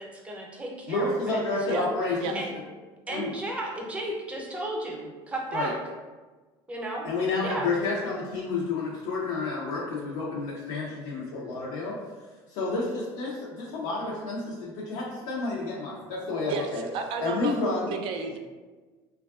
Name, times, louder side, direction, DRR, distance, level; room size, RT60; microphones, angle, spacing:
voice 1, 0.0-1.4 1.7-1.9 2.3-2.5 3.1-5.7 6.7-7.0 7.4-7.7, right 1 dB, 10° right, -1 dB, 0.6 m, -34 dB
voice 2, 0.9-2.4 3.1-3.3 5.5-5.7 7.0-12.0 12.5-16.9 17.2-17.9, left 3 dB, 80° left, -5 dB, 0.5 m, -30 dB
voice 3, 16.5-17.5 17.8-18.4, right 5 dB, 60° right, 4 dB, 0.4 m, -33 dB
3.3 x 2.3 x 2.3 m, 1.3 s
cardioid pair, 125°, 10 cm